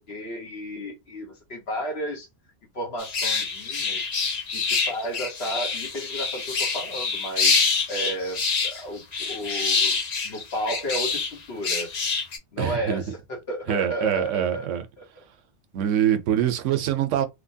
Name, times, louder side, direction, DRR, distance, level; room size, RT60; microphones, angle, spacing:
voice 1, 0.0-2.3 2.7-4.1 4.5-10.0 10.2-11.9 12.5-15.0, equal, 60° left, 1.2 m, -33 dB
sound 1, 3.0-11.3 11.6-12.4, left 4 dB, 45° left, 0.6 m, -26 dB
voice 2, 12.6-13.0 13.7-14.8 15.7-17.3, right 10 dB, 85° right, 1.0 m, -24 dB
3.2 x 2.1 x 2.6 m
omnidirectional pair, 1.2 m